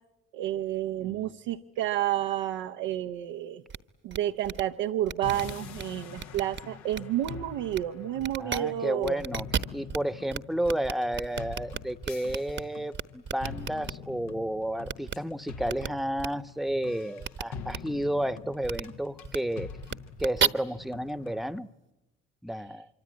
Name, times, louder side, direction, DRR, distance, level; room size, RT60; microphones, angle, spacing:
voice 1, 0.3-3.6 4.0-9.2, right 12 dB, 85° right, 4 dB, 0.9 m, -30 dB
voice 2, 1.0-1.4 8.4-9.5 9.7-19.7 20.2-21.7 22.4-22.9, right 1 dB, ahead, 14 dB, 1.0 m, -31 dB
sound 1, 3.7-3.8 4.1-4.2 4.4-4.6 5.1-5.8 6.2-6.6 6.9-7.3 7.7-7.8 8.2-8.6 9.0-10.0 10.3-10.4 10.6-12.6 12.9-13.9 14.9-15.1 15.7-15.9 16.2-16.3 17.2-17.4 17.7-17.8 18.6-18.8 19.2-19.4 19.8-20.5, right 7 dB, 40° right, 1.1 m, -32 dB
sound 2, 5.2-21.6, left 6 dB, 70° left, 1.3 m, -45 dB
25.0 x 24.5 x 9.6 m, 0.98 s
supercardioid pair, 60°, 29 cm